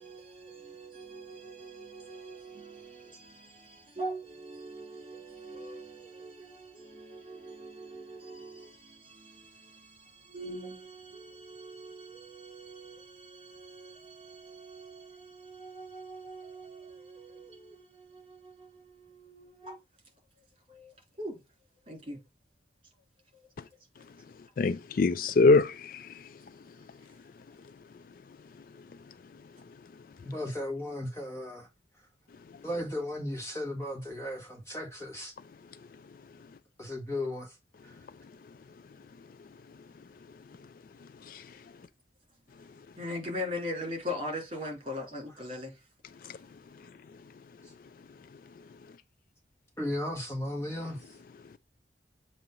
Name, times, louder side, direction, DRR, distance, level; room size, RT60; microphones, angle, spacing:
voice 1, 0.0-19.8 20.7-21.4 21.9-22.2 23.3-23.5 24.0-24.1 42.9-45.8, equal, 30° right, 3.2 m, -42 dB
voice 2, 24.6-26.1 41.3-41.4, left 3 dB, 50° left, 0.3 m, -23 dB
voice 3, 30.2-31.7 31.9-32.1 32.6-35.3 36.8-37.6 37.8-38.0 47.6-47.7 49.8-51.2, left 1 dB, 15° left, 1.6 m, -36 dB
7.5 x 2.8 x 5.3 m
head